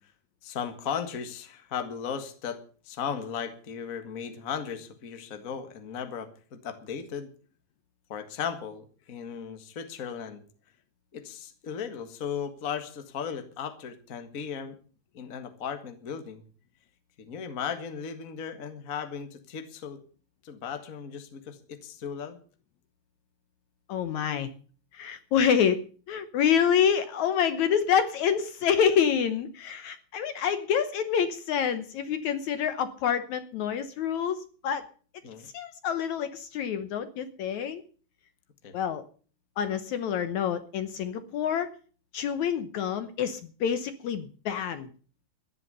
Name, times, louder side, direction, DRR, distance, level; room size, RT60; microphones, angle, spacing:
voice 1, 0.4-7.3 8.1-10.4 11.1-14.8 15.1-16.4 17.2-20.0 20.4-22.4 35.2-35.5 38.6-38.7, left 7 dB, 35° left, 8 dB, 1.4 m, -36 dB
voice 2, 23.9-24.5 24.9-34.8 35.4-37.8 38.7-39.0 39.6-41.7 42.1-44.9, left 8 dB, 65° left, 11 dB, 2.1 m, -27 dB
14.0 x 11.0 x 6.8 m, 0.41 s
omnidirectional pair, 3.9 m